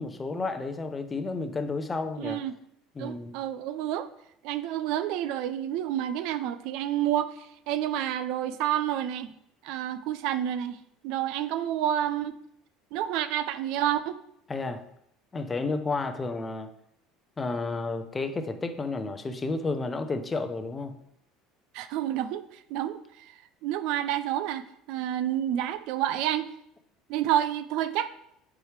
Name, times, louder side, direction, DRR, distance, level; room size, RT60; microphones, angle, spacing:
voice 1, 0.0-2.4 3.0-3.4 14.5-14.8 15.3-16.7 17.4-20.9, left 3 dB, 15° left, 8 dB, 0.6 m, -31 dB
voice 2, 2.2-2.5 3.0-4.1 4.4-9.3 9.6-10.8 11.0-12.4 12.9-14.2 21.7-23.3 23.6-24.6 24.9-26.5 27.1-28.1, right 11 dB, 65° right, 13 dB, 0.4 m, -29 dB
7.9 x 4.8 x 3.2 m, 0.75 s
cardioid pair, 145°, 0 cm